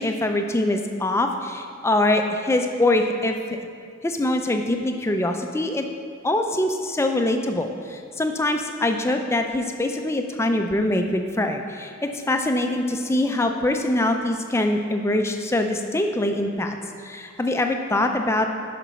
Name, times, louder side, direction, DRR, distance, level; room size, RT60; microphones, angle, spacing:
voice 1, 0.0-3.4 4.0-5.8 6.2-18.5, left 1 dB, 15° left, 4 dB, 0.4 m, -23 dB
7.0 x 5.1 x 5.6 m, 2.3 s
head